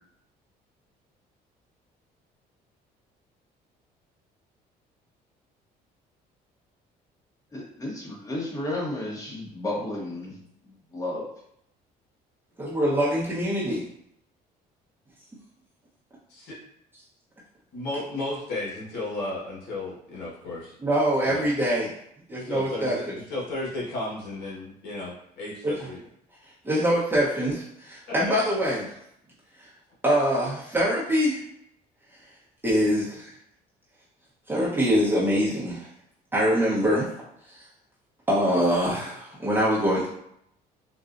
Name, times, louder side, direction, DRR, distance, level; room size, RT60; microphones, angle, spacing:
voice 1, 7.5-10.4 10.6-11.2, left 1 dB, 20° left, -3 dB, 1.1 m, -32 dB
voice 2, 12.6-13.8 20.8-21.9 22.3-23.1 25.6-25.7 26.6-28.8 30.0-31.4 32.6-33.3 34.5-35.9 36.3-37.1 38.3-40.1, equal, 10° right, -8 dB, 0.8 m, -24 dB
voice 3, 17.7-20.7 21.2-21.5 22.3-26.0 28.1-28.3, left 2 dB, 75° left, -6 dB, 1.3 m, -34 dB
4.0 x 2.3 x 2.5 m, 0.72 s
cardioid pair, 110°, 17 cm